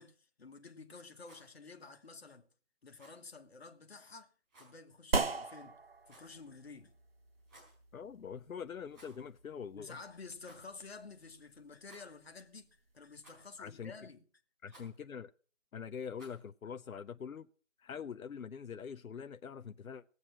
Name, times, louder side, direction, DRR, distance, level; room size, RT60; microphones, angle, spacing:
voice 1, 0.0-2.5 2.8-4.3 4.6-5.8 6.1-6.9 9.7-14.2, left 4 dB, 45° left, 1.5 m, -51 dB
Rattle, 1.1-1.5 2.9-3.2 4.5-4.8 6.0-6.4 7.4-7.8 8.9-9.3 9.6-9.7 10.4-10.7 11.8-12.3 13.2-13.6 14.7-15.0 16.1-16.5, right 1 dB, 15° right, 4.4 m, -60 dB
sound 1, 5.1-13.9, right 3 dB, 45° right, 0.9 m, -42 dB
voice 2, 7.9-10.0 13.6-13.9 14.6-15.3 15.7-17.5 17.8-20.0, left 7 dB, 80° left, 0.7 m, -44 dB
18.5 x 8.0 x 6.1 m
figure-of-eight pair, 165°, 41 cm